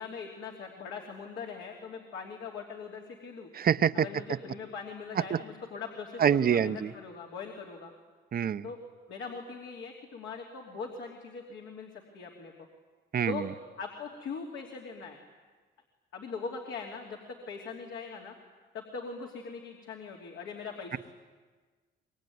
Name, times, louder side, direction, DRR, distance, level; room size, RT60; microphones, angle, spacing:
voice 1, 0.0-3.5 3.9-7.9 8.6-8.8 9.1-12.7 13.3-13.5 13.8-15.2 16.1-18.3 18.7-21.0, left 5 dB, 75° left, 0 dB, 3.0 m, -41 dB
voice 2, 3.5-4.1 5.3-5.4 6.2-6.9 8.3-8.6 13.1-13.4, right 8 dB, 50° right, 13 dB, 0.8 m, -25 dB
24.5 x 22.5 x 9.5 m, 1.4 s
cardioid pair, 90°, 20 cm